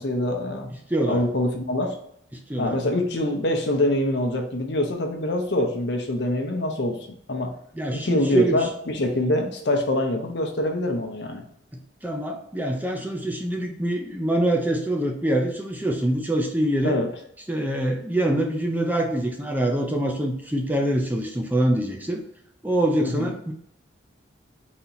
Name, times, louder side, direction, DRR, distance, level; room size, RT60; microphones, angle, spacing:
voice 1, 0.0-0.7 1.1-2.0 2.6-7.0 7.3-7.6 7.9-11.4 16.8-17.1 23.0-23.3, left 1 dB, 60° left, 4 dB, 0.8 m, -25 dB
voice 2, 0.9-1.2 2.3-2.8 7.7-8.7 11.7-17.0 17.5-22.2 22.6-23.5, right 1 dB, 10° right, 2 dB, 0.5 m, -25 dB
4.1 x 2.9 x 4.0 m, 0.71 s
head